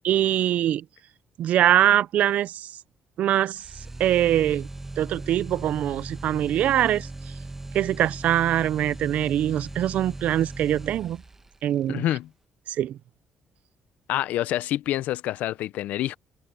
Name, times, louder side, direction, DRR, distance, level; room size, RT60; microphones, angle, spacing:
voice 1, 0.0-0.8 1.4-2.7 3.2-4.7 5.0-7.1 7.7-11.2 11.6-12.0 12.7-13.0, right 11 dB, 70° right, 0.5 m, -23 dB
sound 1, 3.6-11.6, right 2 dB, 15° right, 1.3 m, -38 dB
voice 2, 11.9-12.3 14.1-16.2, left 14 dB, 85° left, 0.6 m, -27 dB
cardioid pair, 110°, 3 cm